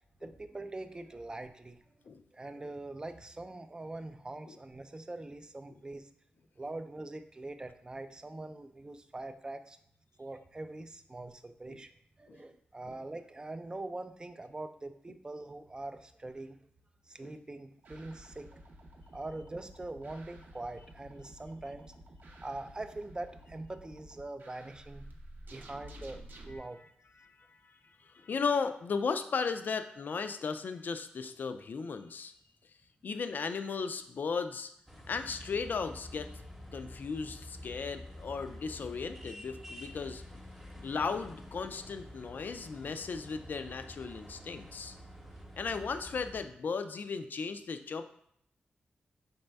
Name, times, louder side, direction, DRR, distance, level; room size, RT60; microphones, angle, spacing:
voice 1, 0.2-1.8 2.3-6.1 6.6-9.8 10.2-11.9 12.2-16.6 17.1-18.6 19.1-21.9 22.4-25.1 25.5-26.8, right 2 dB, 25° right, 9 dB, 0.4 m, -43 dB
sound 1, 17.8-26.6, right 1 dB, 60° right, 0.6 m, -52 dB
voice 2, 27.2-32.3 33.0-34.7 35.1-36.3 36.7-40.2 40.8-44.9 45.6-48.0, left 5 dB, 60° left, 9 dB, 0.4 m, -36 dB
sound 2, 34.9-46.4, left 1 dB, 5° right, 0.8 m, -48 dB
4.1 x 3.2 x 3.4 m, 0.68 s
cardioid pair, 65°, 3 cm